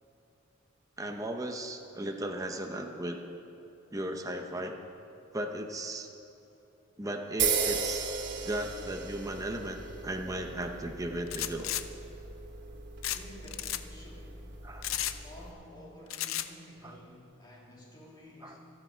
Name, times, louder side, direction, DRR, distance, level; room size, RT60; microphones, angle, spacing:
voice 1, 1.0-3.2 3.9-4.8 5.3-6.1 7.0-8.0 8.4-11.7 14.6-14.9 16.8-16.9 18.4-18.6, right 1 dB, 15° right, 3 dB, 0.8 m, -36 dB
sound 1, 7.4-15.5, right 5 dB, 60° right, 2.4 m, -36 dB
sound 2, 11.3-11.8 13.0-13.2 13.5-13.8 14.8-15.2 16.1-16.5, left 13 dB, 85° left, 0.6 m, -33 dB
voice 2, 13.1-14.5 14.8-18.6, left 1 dB, 20° left, -4 dB, 3.0 m, -51 dB
26.0 x 9.1 x 4.5 m, 2.8 s
head